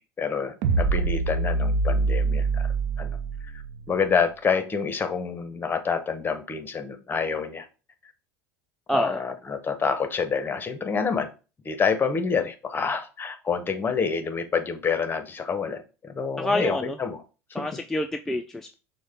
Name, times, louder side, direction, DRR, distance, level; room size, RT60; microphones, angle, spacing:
voice 1, 0.2-3.2 3.5-3.6 3.9-7.7 8.9-11.3 11.6-17.2 17.5-17.7, left 5 dB, 25° left, 9 dB, 0.8 m, -27 dB
sound 1, 0.6-4.0, right 3 dB, 65° right, 0.6 m, -25 dB
voice 2, 8.9-9.2 16.4-17.0 17.5-18.7, left 1 dB, 5° left, 4 dB, 0.3 m, -27 dB
6.2 x 2.2 x 3.5 m, 0.33 s
hypercardioid pair, 90°, 8 cm